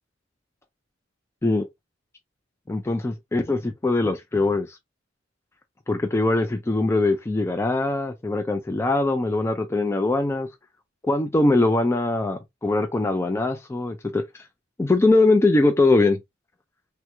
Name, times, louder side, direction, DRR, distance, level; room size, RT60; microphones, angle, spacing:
voice 1, 2.7-4.8 5.9-10.5 11.1-14.2 14.8-16.2, left 2 dB, 15° left, 0.3 m, -22 dB
3.4 x 2.1 x 2.9 m
head